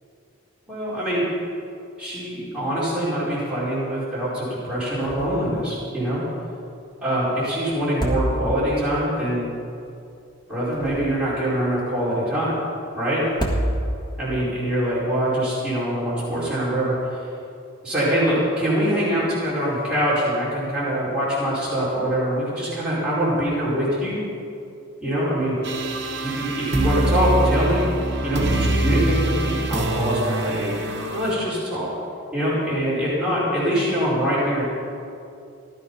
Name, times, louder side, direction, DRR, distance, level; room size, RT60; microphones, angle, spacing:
voice 1, 0.7-1.2 2.0-6.2 7.0-9.5 10.5-12.5 12.9-13.2 14.2-17.2 17.8-24.2 25.0-25.6 26.2-27.9 28.2-30.7 31.1-31.9 32.3-34.6, equal, 5° right, -11 dB, 4.7 m, -24 dB
sound 1, 5.0-5.5 5.8-5.9 7.8-8.8 10.5-11.4 13.2-14.2, right 1 dB, 20° left, 1.7 m, -27 dB
sound 2, 25.6-31.3, right 1 dB, 55° right, 1.4 m, -24 dB
16.5 x 12.5 x 5.6 m, 2.6 s
head